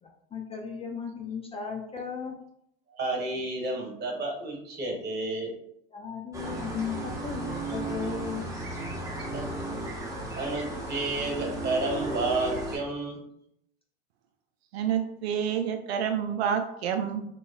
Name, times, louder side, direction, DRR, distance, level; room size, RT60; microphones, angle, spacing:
voice 1, 0.0-2.3 5.9-8.5, left 6 dB, 20° left, 1 dB, 0.4 m, -36 dB
voice 2, 2.9-5.5 9.3-9.5 10.3-13.2, right 2 dB, 30° right, 0 dB, 1.5 m, -31 dB
sound 1, 6.3-12.8, right 2 dB, 10° right, 1.0 m, -34 dB
voice 3, 14.7-17.3, right 8 dB, 85° right, 5 dB, 0.5 m, -28 dB
4.0 x 3.0 x 2.3 m, 0.75 s
hypercardioid pair, 95°, 31 cm